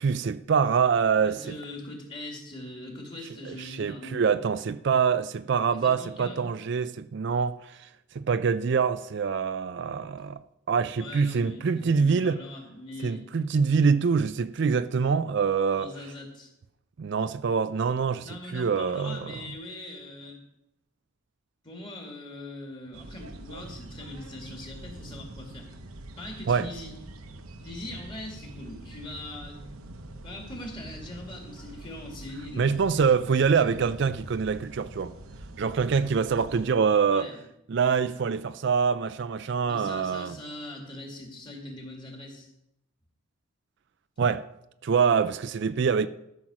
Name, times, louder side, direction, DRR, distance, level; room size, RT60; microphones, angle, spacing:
voice 1, 0.0-1.4 3.5-7.9 8.1-10.4 10.7-12.4 13.0-15.9 17.0-19.4 26.5-26.7 32.6-35.1 35.6-37.3 37.7-40.4 44.2-44.4 44.8-46.1, right 6 dB, 55° right, 0.4 m, -25 dB
voice 2, 1.2-4.2 5.7-6.5 11.0-13.2 15.7-16.5 18.2-20.4 21.6-25.7 26.2-26.9 27.6-29.6 30.1-32.7 33.7-33.9 37.0-37.4 39.7-42.5, left 1 dB, 25° left, 2.2 m, -41 dB
sound 1, 22.9-36.7, right 1 dB, 90° right, 1.0 m, -45 dB
13.0 x 6.0 x 6.1 m
head